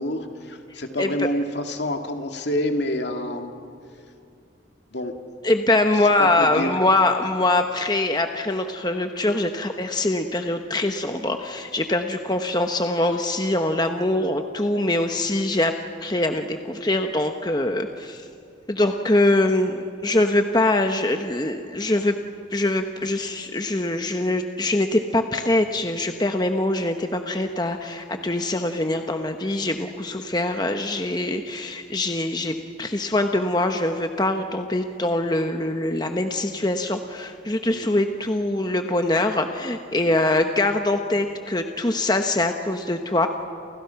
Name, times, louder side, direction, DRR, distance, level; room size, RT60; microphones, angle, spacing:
voice 1, 0.0-3.5 4.9-5.1 6.2-6.7 37.7-37.9 40.0-40.2, left 1 dB, 65° left, 4 dB, 2.3 m, -28 dB
voice 2, 5.4-15.7 16.0-18.3 18.7-22.1 22.5-43.3, left 2 dB, 20° left, 5 dB, 1.0 m, -23 dB
30.0 x 29.0 x 5.9 m, 2.5 s
head